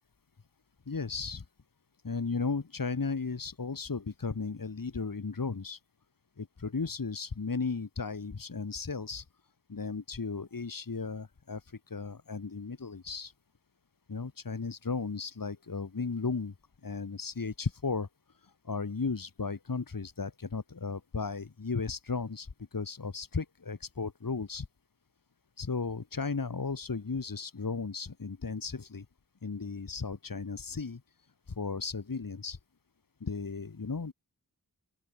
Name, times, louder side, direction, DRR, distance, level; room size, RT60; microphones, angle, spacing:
voice 1, 0.9-1.4 2.0-5.8 6.4-9.3 9.7-13.3 14.1-16.5 16.8-18.1 18.4-24.7 25.6-29.1 29.4-31.0 31.5-32.6 33.2-34.1, left 4 dB, 55° left, 2.3 m, -35 dB
open air
wide cardioid pair, 55°, 40 cm